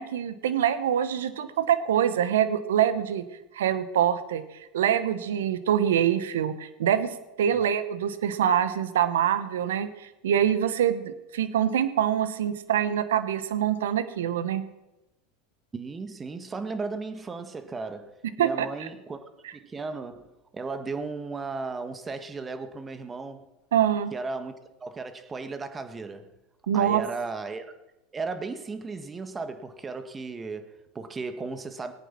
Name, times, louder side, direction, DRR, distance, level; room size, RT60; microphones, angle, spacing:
voice 1, 0.0-3.2 3.5-4.4 4.7-14.6 18.4-18.7 23.7-24.1 26.7-27.0, right 9 dB, 75° right, 1.1 m, -25 dB
voice 2, 15.7-18.1 18.4-20.3 20.5-23.5 24.1-24.5 24.8-26.3 26.7-27.7 28.1-31.9, right 4 dB, 20° right, 1.6 m, -35 dB
19.0 x 9.2 x 6.1 m
hypercardioid pair, 85°, 0 cm